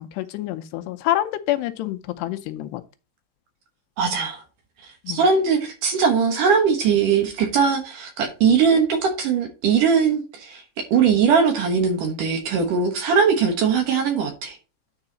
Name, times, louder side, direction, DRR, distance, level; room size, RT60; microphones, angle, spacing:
voice 1, 0.0-2.8 5.0-5.2, left 13 dB, 85° left, 2.8 m, -27 dB
voice 2, 4.0-4.4 5.1-10.6 10.9-14.6, right 6 dB, 65° right, 2.5 m, -20 dB
9.8 x 4.6 x 4.0 m
omnidirectional pair, 4.8 m